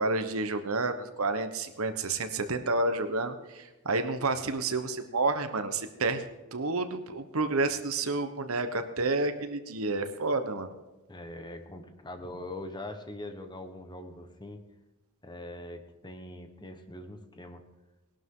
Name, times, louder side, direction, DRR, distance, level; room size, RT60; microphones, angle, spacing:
voice 1, 0.0-10.7, right 3 dB, 65° right, 8 dB, 1.2 m, -30 dB
voice 2, 11.1-14.6 15.2-17.6, left 1 dB, 20° left, 6 dB, 1.2 m, -42 dB
19.0 x 12.0 x 3.8 m, 1.1 s
head